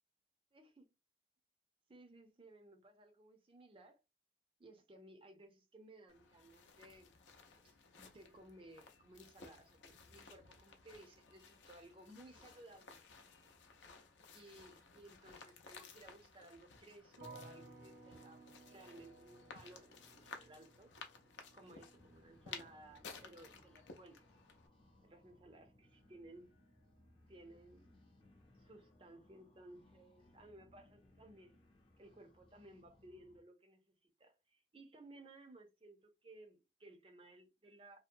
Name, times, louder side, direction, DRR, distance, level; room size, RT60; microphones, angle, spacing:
voice 1, 0.5-0.9 1.9-4.0 4.6-7.2 7.6-13.0 14.3-20.9 21.5-24.2 25.0-26.5 27.3-27.9 28.6-31.6 32.0-38.0, right 1 dB, 30° right, 0.5 m, -59 dB
sound 1, 6.1-24.7, left 5 dB, 85° left, 0.5 m, -57 dB
sound 2, 17.2-28.2 28.5-29.3, right 2 dB, 85° right, 0.7 m, -61 dB
sound 3, 21.9-33.4, left 1 dB, 30° left, 0.5 m, -67 dB
2.7 x 2.0 x 2.5 m
head